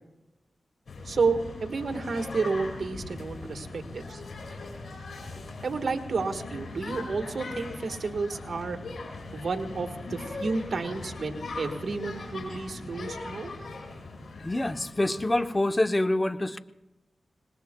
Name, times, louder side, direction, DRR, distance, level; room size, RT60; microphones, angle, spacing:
sound 1, 0.9-15.8, left 3 dB, 75° left, 5.2 m, -40 dB
voice 1, 1.0-4.2 5.6-8.8 9.3-13.5, right 4 dB, 70° right, 5 dB, 1.6 m, -31 dB
voice 2, 14.4-16.6, left 1 dB, 25° left, 10 dB, 0.9 m, -26 dB
26.5 x 20.0 x 2.3 m, 1.0 s
cardioid pair, 45°, 0 cm